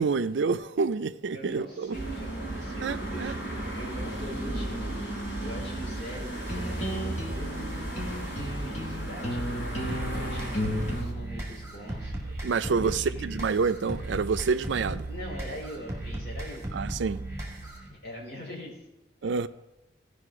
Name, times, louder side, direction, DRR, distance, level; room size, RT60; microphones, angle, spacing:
voice 1, 0.0-2.0 2.8-3.3 12.4-15.1 16.7-17.2 19.2-19.5, right 5 dB, 85° right, 0.4 m, -28 dB
voice 2, 1.3-13.3 15.1-17.0 17.9-18.8 19.2-19.5, equal, 55° left, 3.2 m, -43 dB
sound 1, 1.9-11.0, right 1 dB, 75° left, 3.9 m, -34 dB
sound 2, 5.9-11.1, equal, 35° left, 1.4 m, -34 dB
sound 3, 9.9-17.9, right 1 dB, 15° right, 2.0 m, -36 dB
16.0 x 5.3 x 4.8 m
head